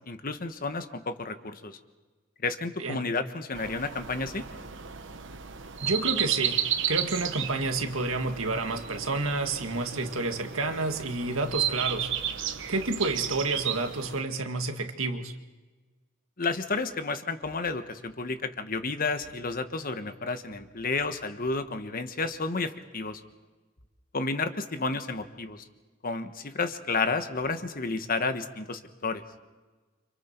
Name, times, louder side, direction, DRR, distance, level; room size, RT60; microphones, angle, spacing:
voice 1, 0.1-1.8 2.4-4.4 16.4-23.2 24.1-25.6 26.0-29.2, left 3 dB, 45° left, 9 dB, 1.3 m, -31 dB
sound 1, 3.5-14.2, right 9 dB, 60° right, 1.2 m, -33 dB
voice 2, 5.8-12.1 12.7-15.3, right 3 dB, 80° right, 6 dB, 2.0 m, -30 dB
29.5 x 26.5 x 4.6 m, 1.3 s
head